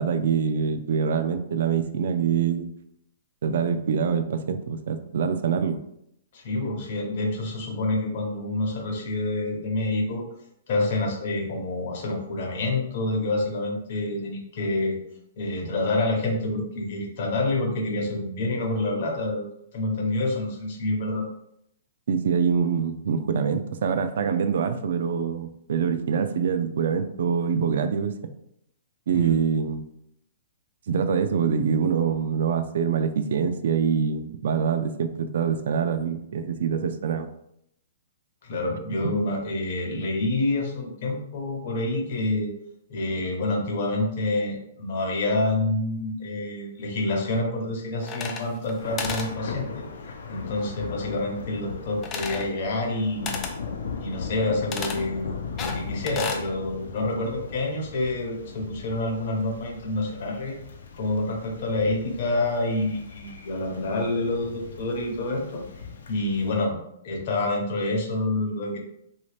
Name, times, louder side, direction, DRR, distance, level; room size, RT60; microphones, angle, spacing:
voice 1, 0.0-2.7 3.4-5.8 22.1-28.1 29.1-29.8 30.9-37.3 39.0-39.1, right 6 dB, 60° right, 9 dB, 0.3 m, -25 dB
voice 2, 6.3-10.2 10.7-15.0 15.4-19.4 19.7-21.3 29.1-29.3 38.4-42.5 42.9-49.8 50.3-53.4 54.0-60.6 60.9-65.6 66.1-66.8 67.0-68.8, left 2 dB, 45° left, 1 dB, 0.8 m, -27 dB
sound 1, 48.0-48.7 49.0-49.3 52.0-52.5 53.3-53.6 54.7-55.0 55.6-56.5, left 5 dB, 15° left, 0.3 m, -32 dB
Thunder / Rain, 48.8-66.5, left 5 dB, 75° left, 0.5 m, -38 dB
3.2 x 2.7 x 3.2 m, 0.75 s
hypercardioid pair, 170°, 0 cm